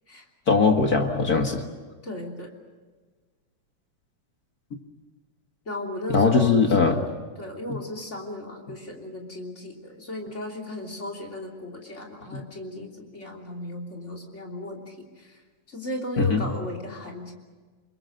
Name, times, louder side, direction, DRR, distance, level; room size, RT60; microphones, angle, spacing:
voice 1, 0.5-1.6 6.1-7.0 7.7-7.8 12.3-12.4 16.2-16.5, left 4 dB, 40° left, 3 dB, 1.6 m, -20 dB
voice 2, 2.0-2.5 5.6-7.1 7.4-15.4 15.7-17.3, left 1 dB, 20° left, 4 dB, 3.3 m, -36 dB
27.5 x 23.0 x 6.6 m, 1.4 s
omnidirectional pair, 3.7 m